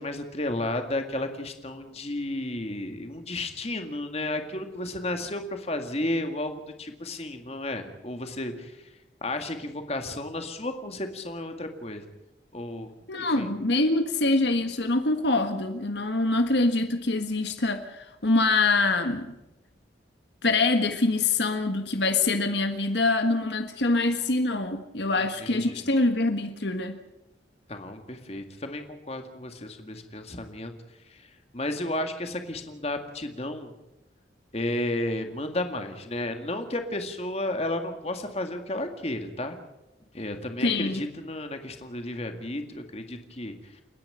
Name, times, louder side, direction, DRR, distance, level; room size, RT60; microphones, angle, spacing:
voice 1, 0.0-8.9 9.2-12.0 12.5-12.9 13.2-13.5 25.4-25.8 27.7-30.7 31.1-31.3 31.5-33.7 34.5-39.6 40.1-43.8, left 1 dB, 35° left, 6 dB, 2.0 m, -33 dB
voice 2, 13.1-19.3 20.4-27.0 40.6-41.0, left 2 dB, 70° left, 7 dB, 1.6 m, -25 dB
30.0 x 10.5 x 9.0 m, 0.95 s
head